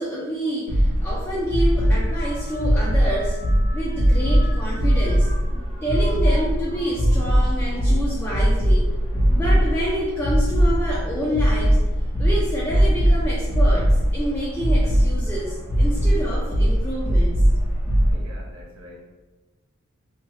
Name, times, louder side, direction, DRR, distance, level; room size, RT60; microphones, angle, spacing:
voice 1, 0.0-3.4 3.7-5.3 5.8-8.8 9.3-11.8 12.2-17.4, equal, 10° left, -7 dB, 0.4 m, -28 dB
sound 1, 0.7-18.1, equal, 85° left, 1.3 m, -20 dB
Dive Bomb, 1.6-11.2 11.6-12.2 13.2-13.5, left 2 dB, 55° left, 0.6 m, -46 dB
voice 2, 18.1-19.1, left 1 dB, 75° right, -3 dB, 0.7 m, -44 dB
2.8 x 2.8 x 3.1 m, 1.2 s
head